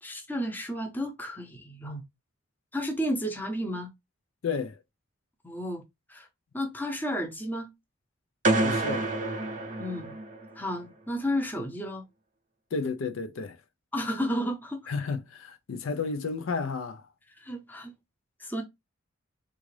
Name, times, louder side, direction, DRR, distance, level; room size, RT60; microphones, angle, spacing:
voice 1, 0.0-2.1 2.7-3.9 5.4-5.8 6.1-6.3 6.5-7.7 9.8-10.1 10.6-12.0 13.9-14.9 17.4-17.9 18.4-18.6, equal, 10° left, 0.6 m, -32 dB
voice 2, 4.4-4.8 8.6-9.1 12.7-13.6 14.9-17.0, left 4 dB, 85° left, 0.5 m, -32 dB
sound 1, 8.4-10.6, right 2 dB, 40° right, 0.5 m, -28 dB
3.7 x 2.4 x 3.1 m
head